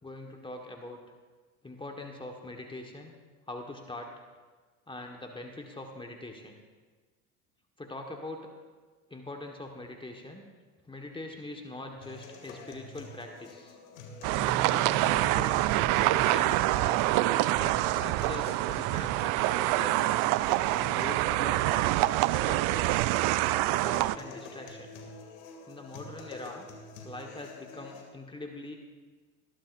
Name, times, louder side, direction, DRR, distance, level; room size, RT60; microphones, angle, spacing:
voice 1, 0.0-1.0 1.6-3.1 3.5-4.1 4.9-6.6 7.8-8.5 9.1-10.4 10.8-13.8 14.6-15.6 16.0-17.1 17.5-20.2 20.4-22.1 22.4-22.9 23.4-24.9 25.7-26.7 27.0-28.8, left 2 dB, 10° left, 2 dB, 1.4 m, -42 dB
sound 1, 12.0-28.0, left 3 dB, 75° left, 2.4 m, -47 dB
sound 2, 14.2-24.2, right 17 dB, 55° right, 0.5 m, -26 dB
sound 3, 14.3-24.0, right 6 dB, 25° right, 3.5 m, -44 dB
20.5 x 11.5 x 2.6 m, 1.4 s
hypercardioid pair, 85°, 40 cm